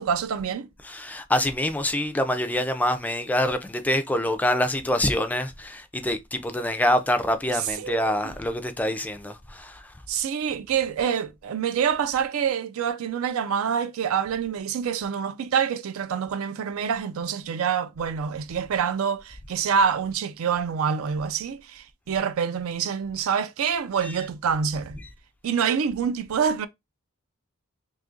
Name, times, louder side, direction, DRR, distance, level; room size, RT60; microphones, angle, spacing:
voice 1, 0.0-0.7 7.8-8.2 10.1-25.0 25.4-26.7, right 7 dB, 70° right, 0.4 m, -26 dB
voice 2, 0.8-9.9 24.0-24.2, left 1 dB, 5° left, 0.3 m, -26 dB
2.7 x 2.4 x 3.7 m
head